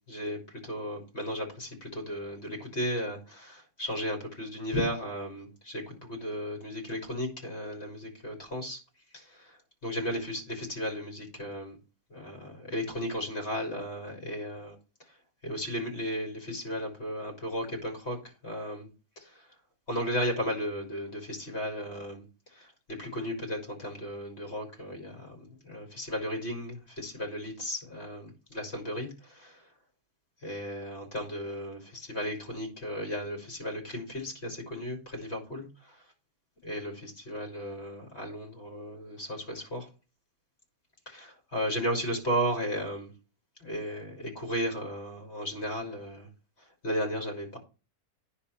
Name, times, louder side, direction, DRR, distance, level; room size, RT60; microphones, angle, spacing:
voice 1, 0.1-8.8 9.1-11.8 12.1-14.7 15.4-18.2 18.4-18.9 19.2-19.5 19.9-22.2 22.5-29.7 30.4-36.0 36.6-39.9 41.1-43.1 43.6-46.3 46.8-47.6, equal, 45° left, 4.7 m, -35 dB
9.8 x 4.3 x 7.0 m
omnidirectional pair, 1.6 m